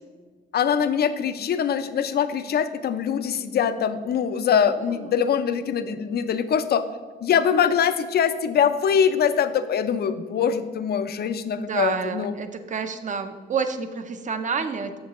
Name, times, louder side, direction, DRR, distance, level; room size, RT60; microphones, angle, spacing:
voice 1, 0.5-6.8 7.2-12.3, left 7 dB, 55° left, 11 dB, 0.5 m, -23 dB
voice 2, 11.5-14.9, right 5 dB, 40° right, 9 dB, 0.6 m, -29 dB
7.1 x 6.5 x 3.0 m, 1.5 s
cardioid pair, 90°, 20 cm